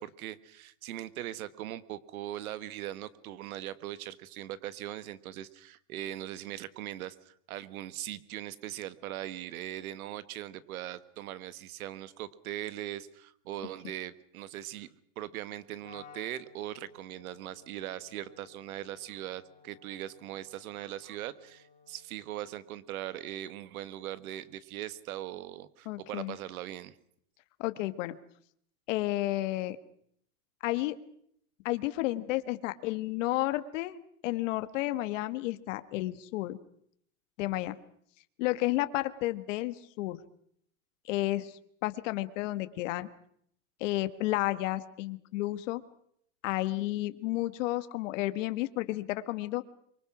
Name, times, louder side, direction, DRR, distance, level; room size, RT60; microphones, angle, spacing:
voice 1, 0.0-14.9 15.1-27.0, right 13 dB, 80° right, 16 dB, 1.5 m, -40 dB
Wind instrument woodwind instrument, 15.8-22.2, left 6 dB, 20° left, 4.0 m, -57 dB
voice 2, 25.8-26.3 27.6-28.2 28.9-29.8 30.6-31.0 31.6-36.6 37.4-37.7 38.4-40.2 41.1-41.5 41.8-43.1 43.8-45.8 46.4-49.6, left 17 dB, 60° left, 12 dB, 1.5 m, -31 dB
25.5 x 24.0 x 6.1 m, 0.67 s
supercardioid pair, 150°, 42 cm